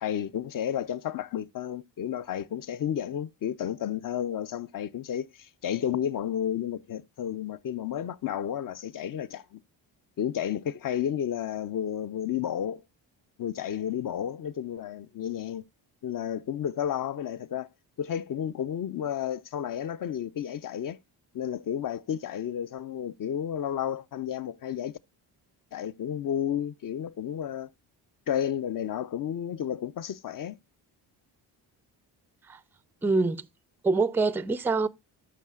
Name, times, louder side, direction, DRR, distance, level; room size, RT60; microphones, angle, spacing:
voice 1, 0.0-9.6 10.2-12.8 13.4-15.6 16.0-17.7 18.0-21.0 21.3-25.0 25.7-27.7 28.3-30.6, left 9 dB, 40° left, 0.6 m, -32 dB
voice 2, 33.0-33.5 33.8-34.9, right 3 dB, 5° right, 0.4 m, -25 dB
13.0 x 5.6 x 2.4 m
supercardioid pair, 50°, 50 cm